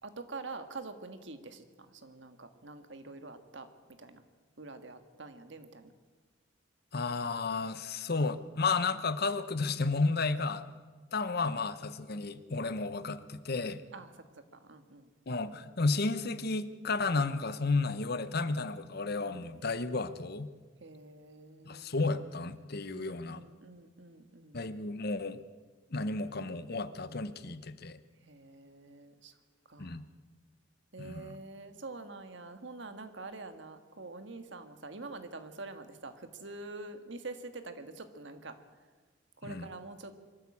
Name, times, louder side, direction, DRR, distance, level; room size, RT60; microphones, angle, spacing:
voice 1, 0.0-1.6 1.9-3.7 4.0-4.2 4.6-5.9 13.9-14.1 14.6-15.1 20.8-21.9 22.9-24.6 28.3-29.3 29.7-30.0 30.9-38.6 39.4-40.1, right 3 dB, 65° right, 9 dB, 1.7 m, -46 dB
voice 2, 6.9-10.7 11.1-13.8 15.3-20.5 21.6-23.4 24.5-25.4 25.9-28.0 29.8-30.0 31.0-31.4 39.4-39.7, left 3 dB, 50° left, 13 dB, 1.0 m, -32 dB
24.0 x 13.5 x 8.6 m, 1.4 s
head